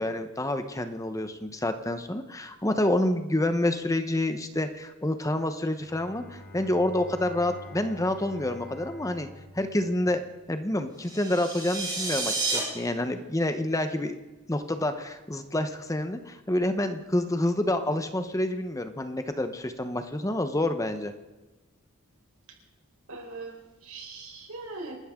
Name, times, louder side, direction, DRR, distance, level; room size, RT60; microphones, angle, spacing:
voice 1, 0.0-9.3 9.5-10.2 10.5-14.2 14.5-21.1, left 1 dB, 15° left, 8 dB, 1.0 m, -28 dB
Bowed string instrument, 5.7-10.7, left 1 dB, 45° left, 2.0 m, -47 dB
sound 1, 11.0-12.6, right 3 dB, 20° right, 6.3 m, -30 dB
voice 2, 23.1-24.9, right 3 dB, 80° right, 2 dB, 4.4 m, -41 dB
29.0 x 13.0 x 3.8 m, 1.2 s
head